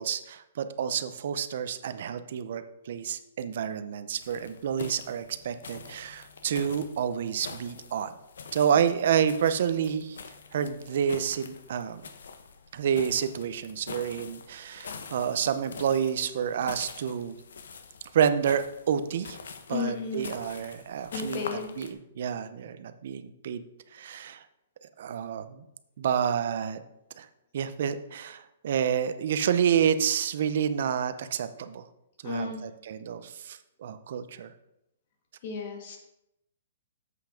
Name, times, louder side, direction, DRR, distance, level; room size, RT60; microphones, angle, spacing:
voice 1, 0.0-8.1 8.5-10.2 10.5-12.0 12.7-17.4 18.1-19.4 19.7-23.6 23.9-24.4 25.0-25.6 26.0-26.8 27.2-27.3 27.5-31.8 32.2-34.5, right 8 dB, 50° right, 11 dB, 0.7 m, -29 dB
sound 1, 4.2-21.9, left 5 dB, 85° left, 0.9 m, -45 dB
voice 2, 19.7-20.3 21.1-21.7 32.2-32.6 35.4-36.0, left 5 dB, 40° left, 2 dB, 1.7 m, -33 dB
7.9 x 5.9 x 5.1 m, 0.84 s
hypercardioid pair, 170°, 0 cm